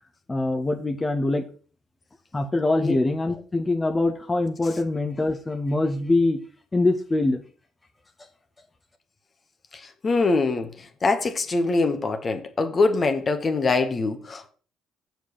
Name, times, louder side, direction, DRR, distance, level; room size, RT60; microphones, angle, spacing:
voice 1, 0.3-1.5 2.3-6.4 6.7-7.4, left 2 dB, 25° left, 4 dB, 1.3 m, -23 dB
voice 2, 9.7-10.7 11.0-14.5, left 3 dB, 40° left, 7 dB, 1.4 m, -23 dB
7.6 x 5.0 x 7.2 m, 0.39 s
hypercardioid pair, 50°, 0 cm